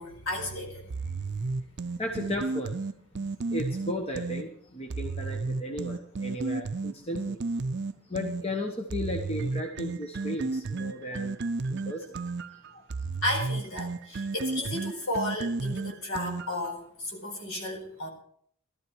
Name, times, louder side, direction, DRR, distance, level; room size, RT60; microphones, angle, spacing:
voice 1, 0.0-1.9 3.2-3.5 13.2-18.1, left 1 dB, 65° left, 2 dB, 4.4 m, -34 dB
sound 1, 0.9-4.4 4.9-8.4 8.9-16.7, right 3 dB, 50° right, 0.5 m, -32 dB
voice 2, 2.0-2.8 3.5-7.4 8.1-11.4 11.7-12.0 12.7-12.8 14.1-14.3, left 1 dB, 25° left, 3 dB, 1.1 m, -35 dB
15.0 x 13.0 x 4.6 m, 0.65 s
head